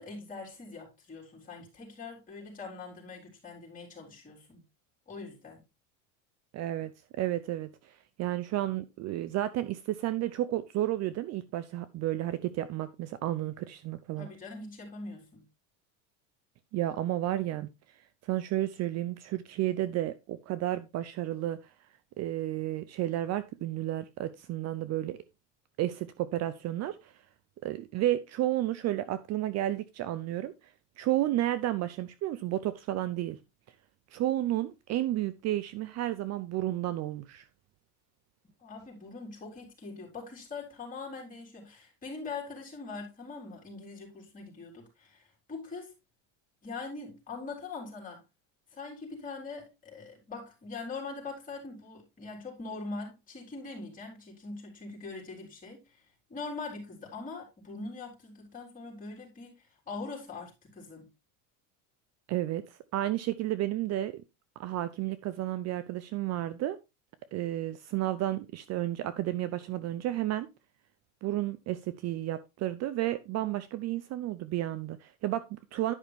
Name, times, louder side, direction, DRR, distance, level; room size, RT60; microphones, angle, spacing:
voice 1, 0.0-4.6 5.1-5.6 14.2-15.4 38.6-45.9 46.6-48.2 48.7-61.1, left 3 dB, 20° left, 4.3 m, -42 dB
voice 2, 6.5-14.3 16.7-17.7 18.2-21.6 22.2-25.2 25.8-27.1 27.6-30.5 31.0-33.4 34.1-37.5 62.3-64.2 64.6-66.8 67.3-70.5 71.2-75.9, right 14 dB, 40° right, 0.6 m, -32 dB
11.0 x 5.7 x 3.4 m
cardioid pair, 135°, 39 cm